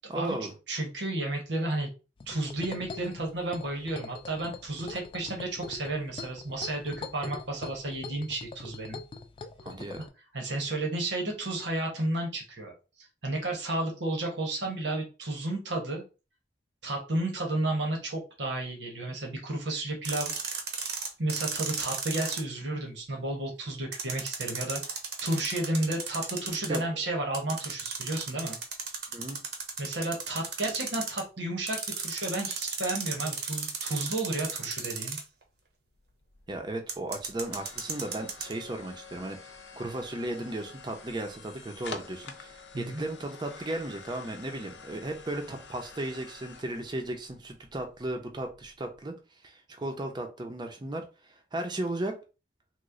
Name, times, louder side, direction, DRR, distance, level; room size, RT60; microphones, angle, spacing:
voice 1, 0.1-0.5 9.6-10.0 26.7-26.8 29.1-29.4 36.5-49.1 49.4-52.2, right 1 dB, 25° right, 4 dB, 0.5 m, -35 dB
voice 2, 0.7-1.9 2.3-9.0 10.3-12.7 13.0-16.0 16.8-20.3 21.2-24.8 25.2-28.6 29.8-35.2 42.7-43.0, right 2 dB, 80° right, 1 dB, 1.0 m, -32 dB
sound 1, 2.2-10.1, left 4 dB, 30° left, 0.3 m, -43 dB
sound 2, 20.0-22.4 23.9-26.8 27.3-31.2 31.7-35.4 36.9-38.5, right 5 dB, 60° right, 0.8 m, -35 dB
sound 3, 35.9-49.0, left 5 dB, 85° left, 0.6 m, -48 dB
3.0 x 2.1 x 3.6 m, 0.31 s
head